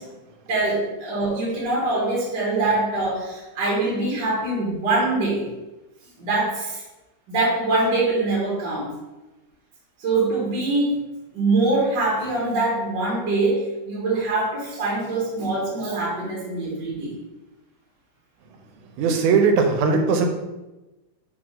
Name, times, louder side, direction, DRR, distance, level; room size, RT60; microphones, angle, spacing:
voice 1, 0.5-5.5 6.2-6.8 7.3-8.9 10.0-10.9 11.3-17.1, right 2 dB, 45° right, -5 dB, 1.8 m, -23 dB
voice 2, 19.0-20.3, right 5 dB, 80° right, 4 dB, 2.2 m, -19 dB
5.0 x 3.8 x 5.1 m, 1.1 s
omnidirectional pair, 3.5 m